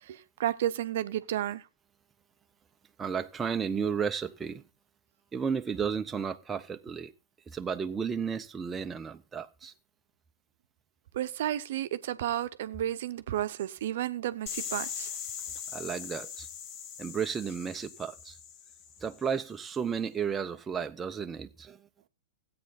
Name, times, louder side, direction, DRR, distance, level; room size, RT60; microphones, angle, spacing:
voice 1, 0.0-1.6 11.1-15.1, right 12 dB, 60° right, 0.8 m, -32 dB
voice 2, 3.0-4.6 5.3-7.1 7.5-9.7 15.7-16.5 17.0-18.4 19.0-21.8, right 6 dB, 20° right, 0.7 m, -33 dB
sound 1, 14.5-19.2, left 8 dB, 40° left, 1.2 m, -40 dB
16.0 x 8.6 x 4.2 m
figure-of-eight pair, 100°, 0 cm